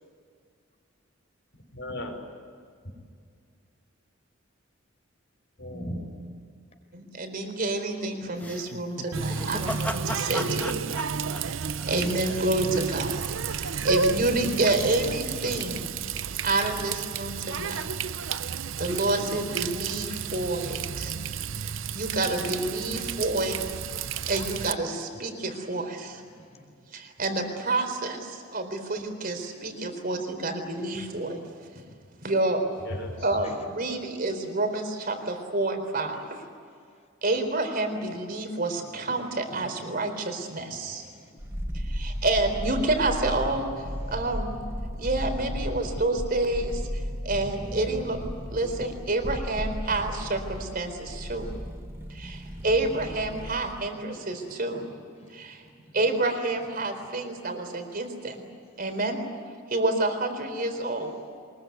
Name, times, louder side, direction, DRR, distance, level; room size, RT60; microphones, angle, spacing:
voice 1, 1.7-2.2 5.6-6.1 9.5-9.7 15.3-15.5 17.6-17.9 22.4-22.6 32.8-33.4, left 1 dB, 60° left, 1 dB, 5.1 m, -37 dB
voice 2, 6.9-10.9 11.4-15.9 16.4-17.8 18.3-21.2 21.6-23.6 24.3-26.2 26.9-31.4 32.2-32.6 33.2-36.4 37.2-41.0 41.7-44.6 45.0-46.9 47.2-48.2 48.5-51.5 52.1-54.9 55.3-55.6 55.9-58.4 58.8-59.2 59.7-61.1, right 2 dB, 45° right, 6 dB, 4.0 m, -29 dB
sound 1, 8.4-12.5, left 1 dB, 10° left, 1.4 m, -36 dB
Water tap faucet, 9.1-24.7, right 5 dB, 70° right, 0.7 m, -31 dB
voice 3, 26.3-26.7 33.4-33.6 38.8-39.2 39.5-40.0 40.9-42.3 53.8-53.9 54.3-54.9 55.2-55.3 55.6-55.7, left 1 dB, 35° left, 4 dB, 4.9 m, -51 dB
sound 2, 41.4-53.8 54.0-54.1, equal, 10° right, 1.6 m, -35 dB
24.0 x 22.0 x 9.5 m, 2.2 s
head